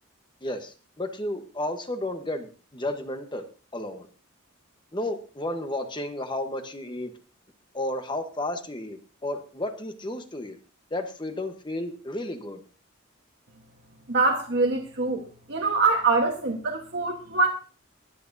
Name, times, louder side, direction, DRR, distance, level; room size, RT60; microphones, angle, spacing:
voice 1, 0.4-3.4 3.7-4.1 4.9-7.1 7.7-10.6 10.9-12.6, left 1 dB, 20° left, 7 dB, 1.1 m, -32 dB
voice 2, 14.1-15.2 15.5-17.5, right 3 dB, 55° right, 0 dB, 1.3 m, -24 dB
22.5 x 8.5 x 2.7 m, 0.37 s
head